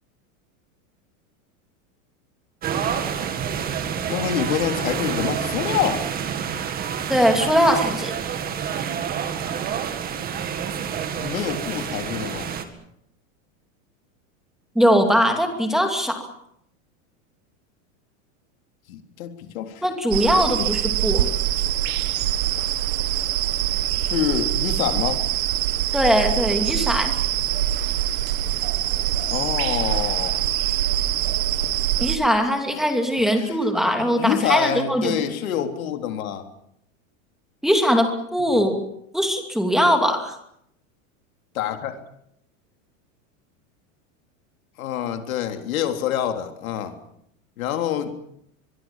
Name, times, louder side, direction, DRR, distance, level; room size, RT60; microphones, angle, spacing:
sound 1, 2.6-12.6, right 8 dB, 20° right, 2.1 m, -28 dB
voice 1, 4.1-6.1 11.2-12.6 18.9-19.8 20.6-20.7 24.0-25.2 29.3-30.4 31.6-31.7 33.2-33.6 34.2-36.4 38.5-38.6 41.5-42.0 44.8-47.0 47.6-48.1, left 10 dB, 90° left, 6 dB, 3.6 m, -26 dB
voice 2, 7.1-8.1 14.7-16.3 19.8-21.3 25.9-27.2 32.0-35.1 37.6-38.8 39.1-40.3, equal, ahead, 4 dB, 2.6 m, -20 dB
sound 2, 20.1-32.2, right 12 dB, 75° right, 1.6 m, -24 dB
24.0 x 23.0 x 7.4 m, 0.74 s
supercardioid pair, 165°, 40 cm